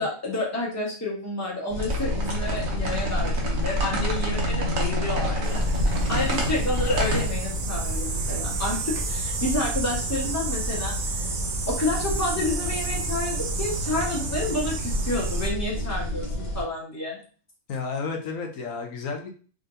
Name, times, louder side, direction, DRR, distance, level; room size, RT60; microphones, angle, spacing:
voice 1, 0.0-11.1 11.7-17.2, left 2 dB, 15° left, -4 dB, 1.1 m, -30 dB
sound 1, 1.7-16.6, equal, 50° left, 1.5 m, -30 dB
sound 2, 1.8-7.2, equal, 90° right, 1.3 m, -28 dB
sound 3, 5.4-15.5, right 4 dB, 50° right, 0.6 m, -31 dB
voice 2, 17.7-19.3, left 4 dB, 85° left, 3 dB, 1.1 m, -31 dB
3.6 x 3.5 x 2.6 m, 0.40 s
omnidirectional pair, 1.4 m